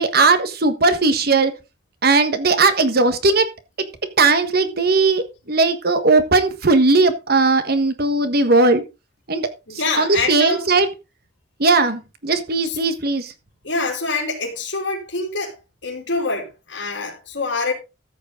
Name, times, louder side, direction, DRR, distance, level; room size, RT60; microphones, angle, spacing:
voice 1, 0.0-1.5 2.0-3.5 4.2-8.8 9.3-9.5 10.0-10.9 11.6-13.3, right 3 dB, 55° right, 1.5 m, -17 dB
voice 2, 9.7-10.7 12.6-12.8 13.6-15.5 15.8-17.7, left 3 dB, 85° left, 3.1 m, -25 dB
14.0 x 7.9 x 3.9 m
head